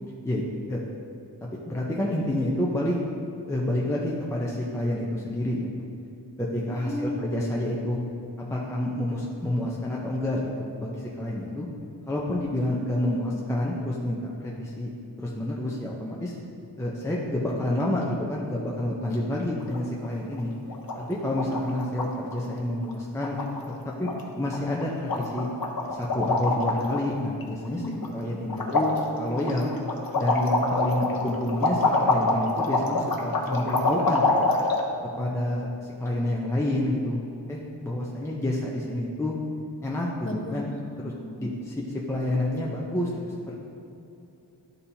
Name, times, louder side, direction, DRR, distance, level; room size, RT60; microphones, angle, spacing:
voice 1, 0.2-0.8 1.7-3.0 3.5-5.7 6.4-8.0 8.5-11.7 12.1-14.9 15.2-16.4 16.8-20.5 21.1-23.4 24.0-25.5 25.9-27.8 28.1-29.7 30.1-34.5 35.2-39.3 39.8-40.7 41.0-41.1 41.4-43.5, left 1 dB, 5° left, -4 dB, 0.7 m, -29 dB
voice 2, 6.7-7.4 27.7-28.0 40.2-41.5, left 1 dB, 30° left, -1 dB, 1.1 m, -35 dB
sound 1, 19.6-20.1 20.3-20.4 20.7-21.0 21.2-22.1 22.3-22.5 22.8-22.9 23.2-23.7 24.1-24.2 24.5-24.8 25.1-27.0 27.4-28.2 28.5-34.8, left 2 dB, 50° left, 0.9 m, -25 dB
11.5 x 4.2 x 2.8 m, 2.7 s
wide cardioid pair, 100°, 44 cm